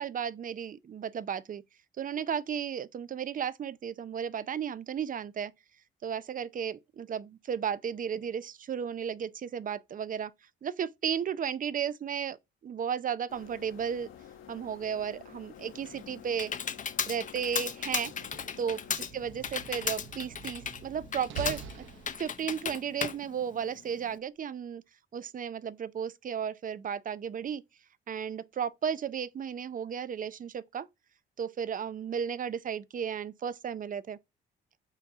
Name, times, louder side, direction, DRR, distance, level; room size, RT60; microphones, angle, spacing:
voice 1, 0.0-1.6 2.0-5.5 6.0-10.3 10.6-12.4 12.6-14.1 14.5-16.5 17.1-18.1 18.6-21.9 22.2-24.8 25.1-27.6 28.1-30.9 31.4-34.2, right 8 dB, 45° right, 0.6 m, -34 dB
sound 1, 13.3-19.0, left 9 dB, 80° left, 1.5 m, -51 dB
Computer keyboard, 15.6-24.2, left 7 dB, 40° left, 0.7 m, -36 dB
Slam, 18.1-22.6, right 5 dB, 80° right, 0.9 m, -45 dB
8.1 x 2.7 x 5.9 m
cardioid pair, 90°, 20 cm